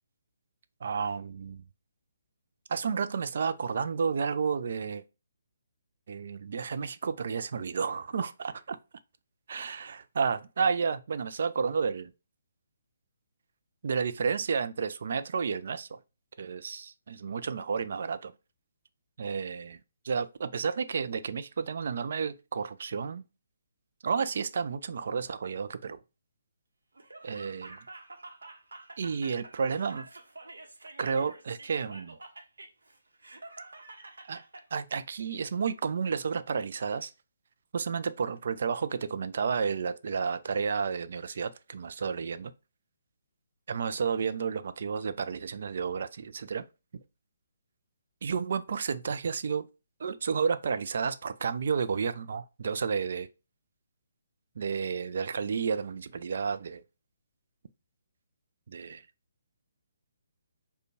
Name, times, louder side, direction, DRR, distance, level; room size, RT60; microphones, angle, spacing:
voice 1, 0.8-1.6 2.7-5.0 6.1-8.8 9.5-12.1 13.8-16.0 16.4-18.3 19.2-19.8 20.0-23.2 24.0-26.0 27.2-27.8 29.0-30.1 31.0-32.2 34.3-34.4 34.7-37.1 37.7-42.5 43.7-46.6 48.2-49.7 50.0-53.3 54.6-56.8 58.7-59.0, right 6 dB, 55° right, 0.3 m, -31 dB
Laughter, 26.9-34.6, right 2 dB, 75° right, 0.8 m, -48 dB
5.0 x 2.2 x 2.7 m
figure-of-eight pair, 140°, 0 cm